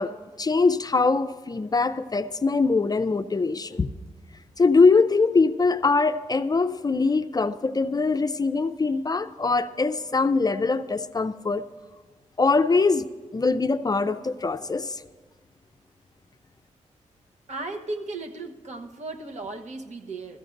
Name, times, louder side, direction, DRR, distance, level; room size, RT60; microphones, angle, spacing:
voice 1, 0.0-3.9 4.6-11.7 12.4-13.1 13.3-15.0, left 4 dB, 30° left, 11 dB, 0.4 m, -22 dB
voice 2, 17.5-20.4, right 2 dB, 60° right, 4 dB, 1.1 m, -35 dB
16.0 x 14.5 x 2.6 m, 1.4 s
cardioid pair, 60°, 13 cm